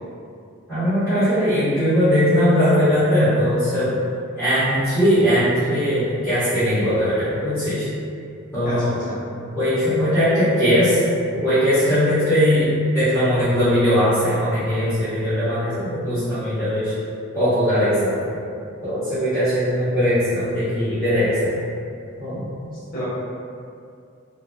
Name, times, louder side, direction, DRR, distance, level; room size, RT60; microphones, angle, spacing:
voice 1, 0.7-4.0 4.4-7.9 8.5-8.9 9.5-11.0 11.3-16.9 17.3-18.3 18.8-21.5 22.2-22.4, equal, 10° left, -20 dB, 1.4 m, -19 dB
voice 2, 8.6-9.2 22.5-23.1, equal, 40° left, -12 dB, 1.1 m, -32 dB
3.9 x 2.3 x 2.2 m, 2.4 s
head